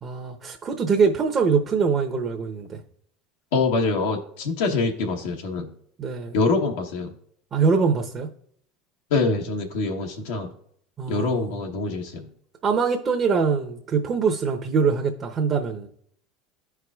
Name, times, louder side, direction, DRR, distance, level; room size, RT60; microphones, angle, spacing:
voice 1, 0.0-2.8 6.0-6.4 7.5-8.3 11.0-11.5 12.6-15.9, right 5 dB, 40° right, 2 dB, 0.9 m, -23 dB
voice 2, 3.5-5.7 6.3-7.1 9.1-10.5 11.1-12.3, left 3 dB, 80° left, 1 dB, 1.0 m, -25 dB
13.0 x 4.7 x 2.4 m, 0.66 s
hypercardioid pair, 95°, 0 cm